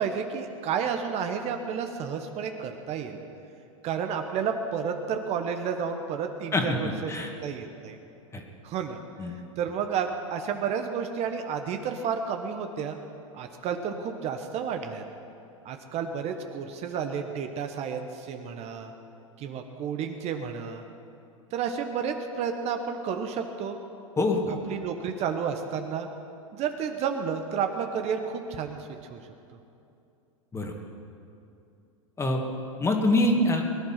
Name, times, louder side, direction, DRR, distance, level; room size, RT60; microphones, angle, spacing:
voice 1, 0.0-3.2 3.8-7.1 7.4-8.0 8.6-9.0 9.2-13.0 13.3-15.0 15.6-18.9 19.4-20.8 21.5-23.8 24.7-26.1 26.5-28.8 29.1-29.2, right 7 dB, 40° right, 5 dB, 1.2 m, -31 dB
voice 2, 6.5-7.3 8.3-8.4 9.2-9.4 24.2-24.6 30.5-30.7 32.2-32.4 32.8-33.6, left 1 dB, 15° left, 3 dB, 2.1 m, -25 dB
21.0 x 10.5 x 6.0 m, 2.7 s
hypercardioid pair, 105°, 17 cm